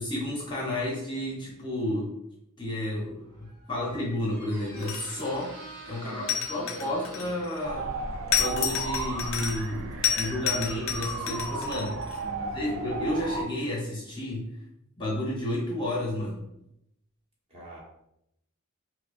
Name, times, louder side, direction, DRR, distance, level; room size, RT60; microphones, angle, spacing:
voice 1, 0.0-2.1 2.6-5.5 5.9-7.9 8.4-12.2 12.5-14.5 15.0-16.5, left 1 dB, 20° left, -4 dB, 0.6 m, -31 dB
Squeak, 3.1-11.8, right 1 dB, 45° right, 1.4 m, -49 dB
sound 1, 4.8-5.4 6.3-7.6 8.3-9.7 10.0-12.2, left 9 dB, 60° left, 0.5 m, -30 dB
voice 2, 5.9-7.3 12.2-12.8 17.5-17.8, right 1 dB, 25° right, -6 dB, 1.1 m, -44 dB
sound 2, 7.6-13.4, right 3 dB, 65° right, 0.5 m, -34 dB
4.9 x 2.0 x 2.4 m, 0.81 s
head